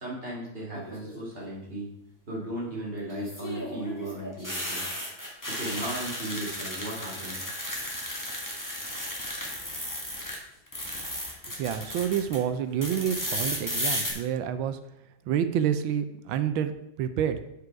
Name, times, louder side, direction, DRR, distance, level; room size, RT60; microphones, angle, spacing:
voice 1, 0.0-1.9 2.3-4.8 5.5-7.4, right 1 dB, 30° right, -3 dB, 2.4 m, -36 dB
sound 1, 0.7-1.2 3.1-10.4 10.7-12.4 12.8-14.1, left 1 dB, 10° left, 1.4 m, -34 dB
voice 2, 11.6-14.8 15.3-16.7 17.0-17.4, right 9 dB, 80° right, 11 dB, 1.4 m, -28 dB
8.3 x 5.2 x 4.6 m, 0.83 s
omnidirectional pair, 2.2 m